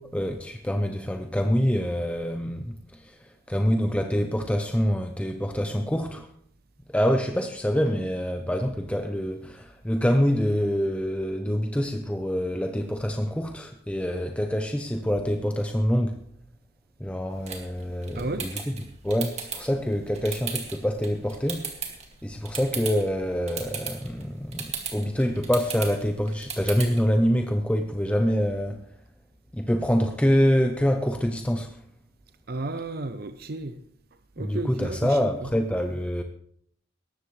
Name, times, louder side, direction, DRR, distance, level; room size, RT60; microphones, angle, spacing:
voice 1, 0.0-6.3 6.9-16.2 17.0-18.8 19.0-21.8 22.2-28.8 29.5-31.8 34.4-36.2, equal, 5° left, 0.7 m, -26 dB
sound 1, 17.3-27.1, right 6 dB, 35° right, 2.2 m, -38 dB
voice 2, 18.1-18.5 32.5-33.8 34.4-35.5, right 2 dB, 50° right, 0.6 m, -33 dB
18.0 x 14.0 x 3.3 m
head